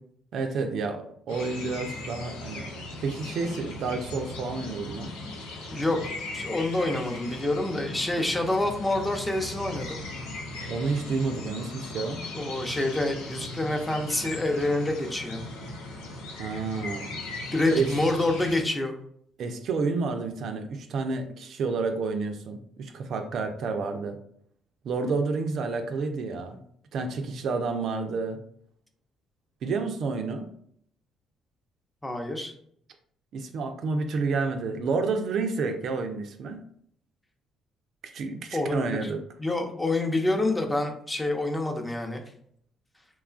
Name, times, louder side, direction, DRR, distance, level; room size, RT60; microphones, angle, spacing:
voice 1, 0.3-5.1 10.7-12.2 16.4-17.1 17.7-17.9 19.4-24.2 24.8-26.6 26.9-28.4 29.6-30.5 33.3-36.6 38.1-39.2, right 4 dB, 65° right, 6 dB, 0.3 m, -30 dB
sound 1, 1.3-18.6, left 2 dB, 90° left, 0.5 m, -38 dB
voice 2, 5.7-10.0 12.3-15.4 17.5-18.9 32.0-32.5 38.5-39.1 39.4-42.2, left 2 dB, 15° left, 3 dB, 0.6 m, -27 dB
2.9 x 2.3 x 2.4 m, 0.65 s
supercardioid pair, 60°, 0 cm